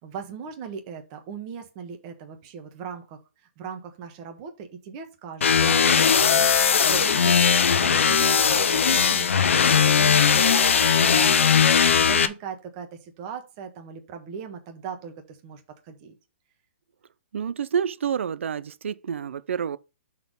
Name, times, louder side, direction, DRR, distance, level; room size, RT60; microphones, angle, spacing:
voice 1, 0.0-3.2 3.6-7.4 7.8-9.3 9.5-10.7 11.0-16.2, right 6 dB, 30° right, 1.4 m, -39 dB
sound 1, 5.4-12.3, left 7 dB, 80° left, 0.8 m, -19 dB
voice 2, 17.3-19.8, right 7 dB, 70° right, 0.5 m, -28 dB
5.9 x 4.3 x 5.3 m
hypercardioid pair, 160°, 7 cm